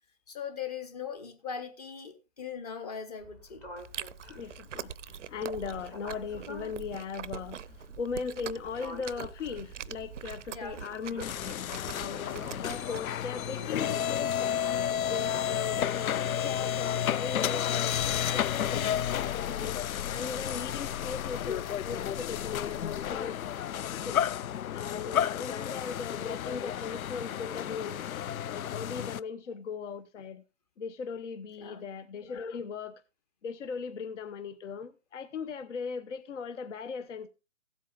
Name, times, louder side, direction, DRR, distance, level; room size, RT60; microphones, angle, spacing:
voice 1, 0.3-3.6 10.5-10.8 23.0-23.2 31.6-31.9, left 7 dB, 30° left, 1.0 m, -40 dB
sound 1, 3.2-15.8, left 1 dB, 10° left, 0.7 m, -50 dB
Chewing mastication, 3.8-13.0, right 9 dB, 65° right, 0.6 m, -43 dB
voice 2, 4.3-11.3 11.8-14.6 15.1-19.8 20.1-23.4 23.8-24.3 24.7-28.0 28.5-30.4 30.8-32.9 33.4-37.3, left 5 dB, 60° left, 1.0 m, -38 dB
sound 2, 11.2-29.2, left 10 dB, 85° left, 0.5 m, -32 dB
16.0 x 8.3 x 2.4 m
hypercardioid pair, 150°, 41 cm